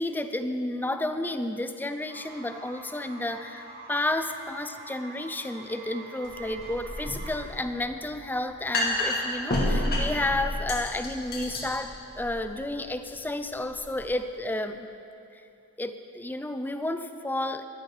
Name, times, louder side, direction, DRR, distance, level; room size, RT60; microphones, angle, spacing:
voice 1, 0.0-14.9 15.8-17.6, left 1 dB, 10° left, 9 dB, 0.4 m, -31 dB
sound 1, 2.1-7.5, right 2 dB, 20° right, 3.3 m, -45 dB
sound 2, 6.2-14.0, left 1 dB, 45° left, 2.3 m, -31 dB
12.5 x 11.0 x 4.9 m, 2.6 s
head